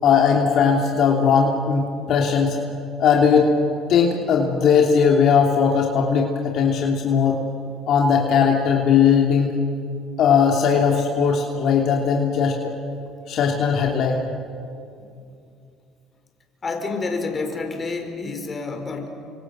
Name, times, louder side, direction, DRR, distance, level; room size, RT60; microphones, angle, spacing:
voice 1, 0.0-2.6 3.0-3.6 3.9-7.4 7.9-9.6 10.2-12.7 13.3-14.2, left 6 dB, 60° left, 0 dB, 3.3 m, -18 dB
voice 2, 16.6-19.1, left 3 dB, 30° left, 5 dB, 4.6 m, -28 dB
29.5 x 26.0 x 7.9 m, 2.5 s
supercardioid pair, 80°, 0 cm